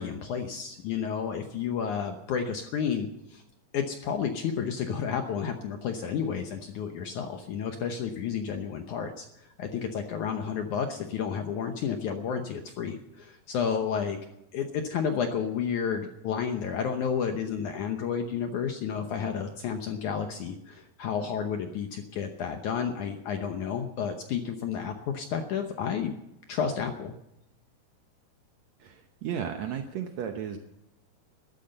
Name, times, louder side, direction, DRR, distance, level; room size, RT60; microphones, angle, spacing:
voice 1, 0.0-3.4 3.7-14.2 14.5-26.2 26.5-27.1, left 7 dB, 70° left, 5 dB, 1.9 m, -31 dB
voice 2, 28.8-30.6, right 8 dB, 80° right, 5 dB, 1.6 m, -34 dB
13.5 x 13.0 x 6.6 m, 0.84 s
omnidirectional pair, 4.5 m